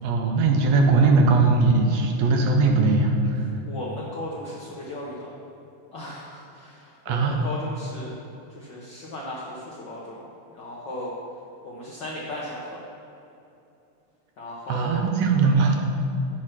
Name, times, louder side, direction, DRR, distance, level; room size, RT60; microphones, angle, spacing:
voice 1, 0.0-3.4 7.1-7.4 14.7-15.8, right 3 dB, 70° right, 2 dB, 1.9 m, -20 dB
voice 2, 3.6-5.3 5.9-8.1 8.5-10.2 10.5-11.2 11.6-12.8 14.4-15.2, left 1 dB, 85° left, -5 dB, 1.0 m, -36 dB
7.7 x 6.4 x 5.8 m, 2.8 s
omnidirectional pair, 3.5 m